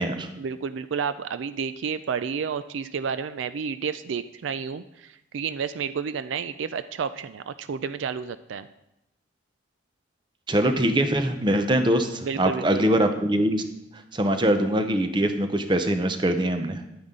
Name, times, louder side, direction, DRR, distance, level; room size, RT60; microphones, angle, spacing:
voice 1, 0.4-8.7 12.2-12.9, right 6 dB, 80° right, 13 dB, 0.4 m, -31 dB
voice 2, 10.5-13.6 14.1-16.8, right 1 dB, 25° right, 7 dB, 0.7 m, -23 dB
10.5 x 9.4 x 3.7 m, 0.88 s
head